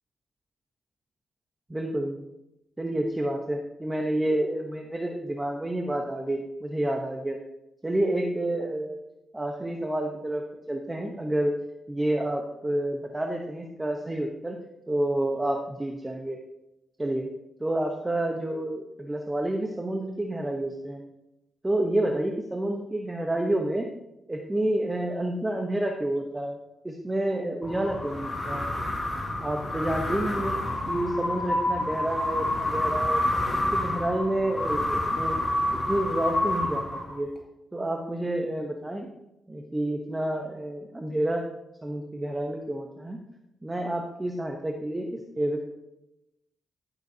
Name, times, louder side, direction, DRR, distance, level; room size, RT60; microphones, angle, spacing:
voice 1, 1.7-2.2 2.8-7.4 7.8-9.0 9.3-11.5 11.9-14.6 14.9-16.4 17.0-17.3 17.6-21.0 21.6-23.9 24.3-26.6 26.8-28.6 29.4-30.6 30.9-33.2 33.7-35.4 35.9-37.3 37.7-39.1 39.5-41.5 41.8-43.2 43.6-45.6, right 1 dB, 15° right, 2 dB, 0.9 m, -29 dB
sound 1, 27.6-37.4, left 1 dB, 20° left, 2.3 m, -28 dB
14.5 x 6.9 x 2.8 m, 0.91 s
cardioid pair, 85°, 0 cm